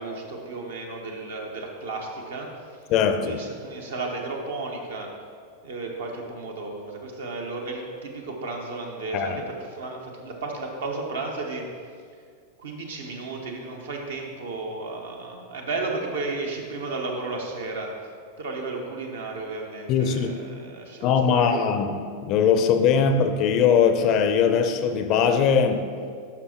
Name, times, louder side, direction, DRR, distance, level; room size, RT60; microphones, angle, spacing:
voice 1, 0.0-2.7 3.2-5.1 5.6-11.7 12.6-17.9 18.4-21.6, right 3 dB, 65° right, 1 dB, 1.1 m, -33 dB
voice 2, 2.9-3.4 9.1-9.4 19.9-20.3 21.0-21.9 22.2-25.9, left 6 dB, 40° left, 8 dB, 0.5 m, -20 dB
11.5 x 5.5 x 2.9 m, 2.1 s
figure-of-eight pair, 90°, 0 cm